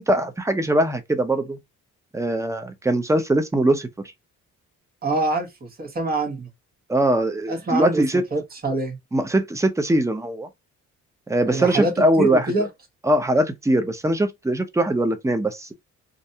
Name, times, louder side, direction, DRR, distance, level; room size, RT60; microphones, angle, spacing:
voice 1, 0.0-1.6 2.1-3.9 6.9-8.2 9.1-10.5 11.3-12.7 13.0-15.7, right 1 dB, 10° right, 0.6 m, -21 dB
voice 2, 5.0-6.5 7.5-9.0 11.5-12.7, right 2 dB, 30° right, 1.1 m, -25 dB
2.5 x 2.1 x 2.7 m
cardioid pair, 90°, 30 cm